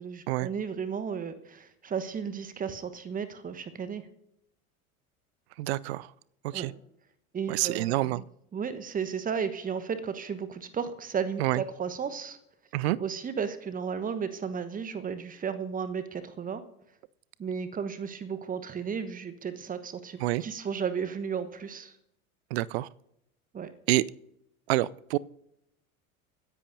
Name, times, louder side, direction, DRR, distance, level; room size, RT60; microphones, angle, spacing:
voice 1, 0.0-4.1 6.5-6.7 7.3-8.2 8.5-12.4 13.0-16.6 17.4-21.9 23.5-23.7, right 6 dB, 20° right, 1.2 m, -34 dB
voice 2, 5.6-6.1 6.4-6.7 7.5-8.2 11.4-11.6 12.7-13.0 20.2-20.4 22.5-22.9 23.9-24.0 24.7-25.2, right 18 dB, 50° right, 0.5 m, -27 dB
22.5 x 10.5 x 2.7 m
figure-of-eight pair, 80°, 43 cm